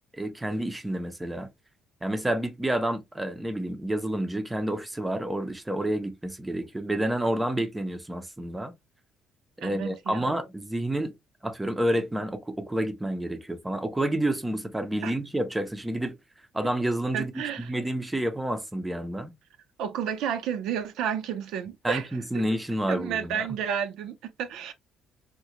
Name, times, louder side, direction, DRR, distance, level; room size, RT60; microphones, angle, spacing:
voice 1, 0.1-1.5 2.0-8.7 9.6-11.1 11.4-16.2 16.5-17.3 17.7-19.3 21.8-23.5, right 1 dB, 5° right, 0.5 m, -29 dB
voice 2, 9.6-10.4 15.0-15.1 17.1-17.8 19.8-22.1 22.3-22.4 22.9-24.7, right 8 dB, 75° right, 0.5 m, -31 dB
3.7 x 2.1 x 2.8 m
cardioid pair, 165°, 0 cm